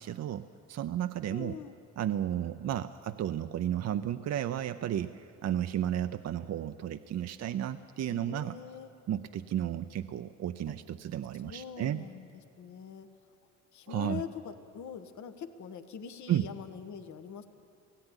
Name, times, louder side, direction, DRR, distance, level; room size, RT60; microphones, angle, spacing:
voice 1, 0.0-1.6 2.0-8.6 9.1-12.0 13.9-14.2 16.3-16.5, right 11 dB, 60° right, 10 dB, 0.6 m, -33 dB
voice 2, 1.3-1.8 8.1-8.9 10.7-10.8 11.4-12.3 12.6-13.1 13.7-17.5, left 7 dB, 70° left, 8 dB, 1.4 m, -43 dB
17.5 x 16.0 x 9.9 m, 2.5 s
cardioid pair, 90°, 30 cm